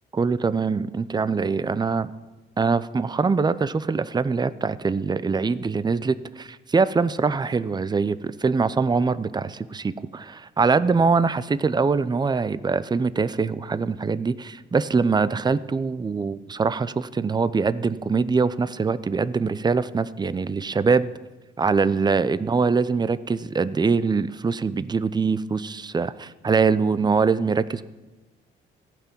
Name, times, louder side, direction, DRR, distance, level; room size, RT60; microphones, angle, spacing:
voice 1, 0.1-2.1 2.6-21.1 21.6-27.8, right 4 dB, 20° right, 15 dB, 0.6 m, -23 dB
15.5 x 5.9 x 9.0 m, 1.2 s
cardioid pair, 90°, 20 cm